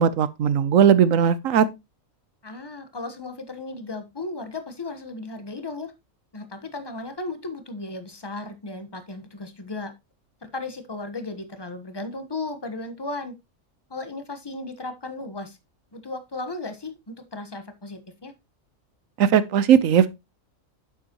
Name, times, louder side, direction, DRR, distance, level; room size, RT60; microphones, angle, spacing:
voice 1, 0.0-1.7 19.2-20.1, right 8 dB, 75° right, 1.1 m, -18 dB
voice 2, 2.4-5.9 6.3-9.9 10.4-13.3 13.9-15.6 15.9-18.3, left 2 dB, 20° left, 1.1 m, -35 dB
9.7 x 7.3 x 3.0 m
omnidirectional pair, 1.4 m